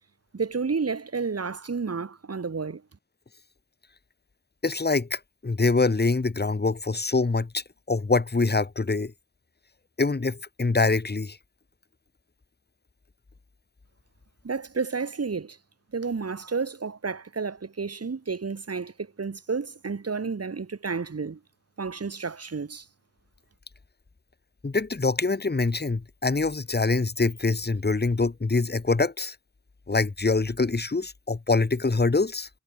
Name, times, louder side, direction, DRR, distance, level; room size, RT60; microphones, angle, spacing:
voice 1, 0.3-2.8 14.4-15.6 15.9-21.4 21.8-22.9, right 5 dB, 55° right, 2.1 m, -31 dB
voice 2, 4.6-9.1 10.0-11.4 24.6-29.4 29.9-32.5, left 3 dB, 35° left, 1.9 m, -25 dB
wide cardioid pair, 65°, 30 cm